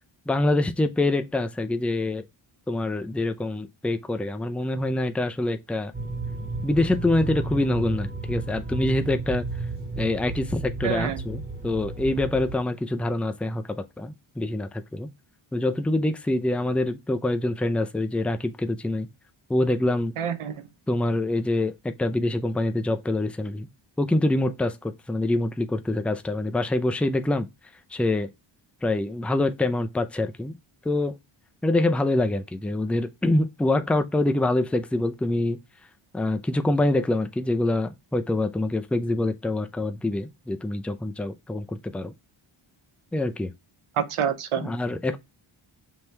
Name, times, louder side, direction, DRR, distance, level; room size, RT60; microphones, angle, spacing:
voice 1, 0.3-2.2 2.7-5.9 6.6-9.4 10.0-15.1 15.5-19.1 19.5-20.1 20.9-23.7 24.0-27.5 27.9-28.3 28.8-30.5 30.8-31.2 31.6-35.6 36.1-42.1 43.1-43.5 44.6-45.2, left 2 dB, 5° left, 0.4 m, -25 dB
sound 1, 5.9-12.6, right 3 dB, 20° right, 1.5 m, -33 dB
voice 2, 10.8-11.2 20.2-20.6 44.0-44.7, right 8 dB, 75° right, 0.8 m, -27 dB
5.5 x 2.9 x 3.2 m
wide cardioid pair, 95°, 50 cm